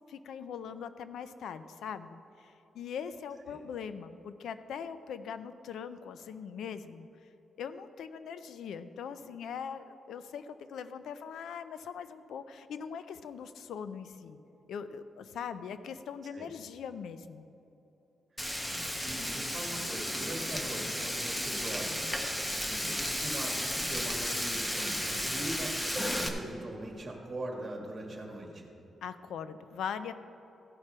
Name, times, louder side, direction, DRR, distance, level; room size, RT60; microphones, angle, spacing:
voice 1, 0.1-7.1 7.6-14.4 14.7-17.5 29.0-30.1, left 7 dB, 80° left, 12 dB, 0.4 m, -41 dB
Frying (food), 18.4-26.3, equal, 10° left, 0.8 m, -33 dB
voice 2, 18.6-22.1 22.4-28.7, right 1 dB, 30° right, 0 dB, 1.5 m, -42 dB
15.0 x 6.0 x 4.4 m, 2.9 s
wide cardioid pair, 155°, 0 cm